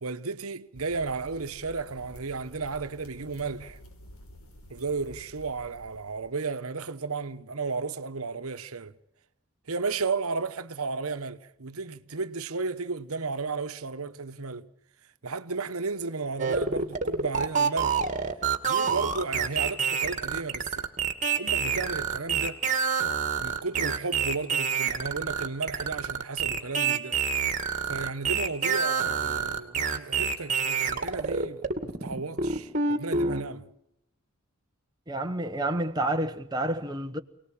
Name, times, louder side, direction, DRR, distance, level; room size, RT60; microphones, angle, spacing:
voice 1, 0.0-3.8 4.7-8.9 9.7-14.7 15.2-18.0 18.6-20.9 21.4-22.6 23.4-27.2 27.9-33.7, right 4 dB, 80° right, 1.1 m, -33 dB
sound 1, 0.7-6.3, equal, 80° left, 4.6 m, -50 dB
sound 2, 16.4-33.4, right 5 dB, 35° right, 2.2 m, -27 dB
voice 2, 35.1-37.2, right 1 dB, 20° right, 1.1 m, -29 dB
29.0 x 19.0 x 8.7 m
head